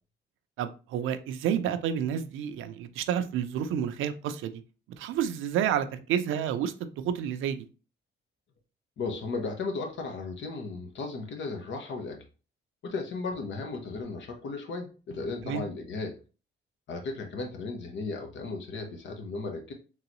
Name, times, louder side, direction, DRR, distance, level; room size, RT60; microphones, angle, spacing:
voice 1, 0.6-4.6 5.0-7.7 15.5-15.6, right 9 dB, 85° right, 10 dB, 0.5 m, -30 dB
voice 2, 9.0-12.2 12.8-16.2 16.9-19.7, left 3 dB, 70° left, 4 dB, 1.0 m, -35 dB
3.8 x 3.0 x 3.0 m, 0.34 s
cardioid pair, 90°, 20 cm